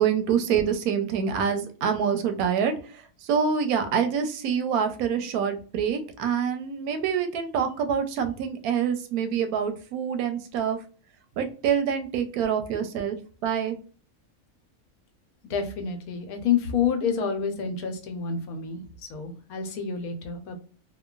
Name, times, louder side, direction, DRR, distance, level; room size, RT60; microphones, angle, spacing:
voice 1, 0.0-2.7 3.2-10.8 11.4-13.2 13.4-13.8, right 7 dB, 90° right, 7 dB, 1.1 m, -26 dB
voice 2, 15.5-18.8 19.1-20.6, left 6 dB, 90° left, 5 dB, 1.1 m, -28 dB
2.9 x 2.1 x 2.3 m, 0.41 s
omnidirectional pair, 1.5 m